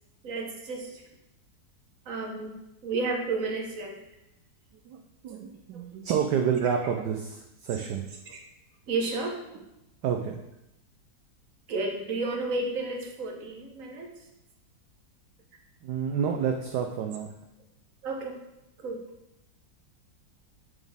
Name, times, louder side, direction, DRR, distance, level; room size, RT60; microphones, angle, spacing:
voice 1, 0.2-1.0 2.0-2.5 2.8-4.0 5.7-5.8 6.8-6.9 8.3-8.4 8.9-9.4 11.7-14.1 18.0-18.4 18.8-19.0, right 3 dB, 50° right, 1 dB, 1.4 m, -32 dB
voice 2, 5.2-8.1 10.0-10.4 15.8-17.3, right 7 dB, 70° right, 4 dB, 1.1 m, -29 dB
10.5 x 4.2 x 3.5 m, 0.89 s
omnidirectional pair, 2.0 m